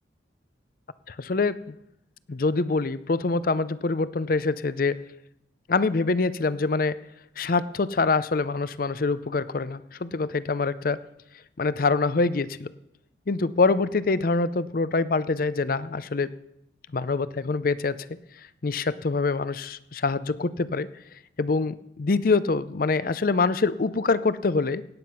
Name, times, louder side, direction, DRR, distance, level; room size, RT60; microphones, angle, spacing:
voice 1, 1.1-1.8 2.3-5.0 5.7-7.0 7.4-11.0 11.6-12.7 13.3-16.3 16.9-18.1 18.6-20.9 21.4-24.9, left 3 dB, 50° left, 16 dB, 0.5 m, -25 dB
17.0 x 9.1 x 5.7 m, 0.82 s
head